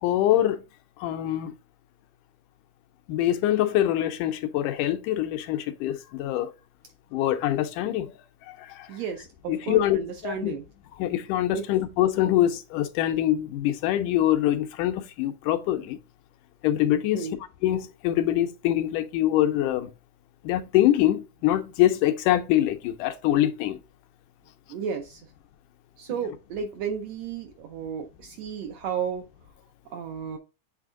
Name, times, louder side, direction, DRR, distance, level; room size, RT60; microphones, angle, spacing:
voice 1, 0.0-0.6 1.0-1.5 3.1-6.5 7.1-8.2 8.5-8.9 9.5-10.0 10.2-10.5 11.0-16.0 16.6-17.3 17.6-19.9 20.4-23.8, left 13 dB, 85° left, 2.2 m, -24 dB
voice 2, 8.9-10.6 11.5-11.6 17.1-17.4 24.7-25.3 26.0-29.3 29.9-30.4, right 7 dB, 75° right, 1.5 m, -33 dB
8.1 x 3.4 x 3.7 m
omnidirectional pair, 3.6 m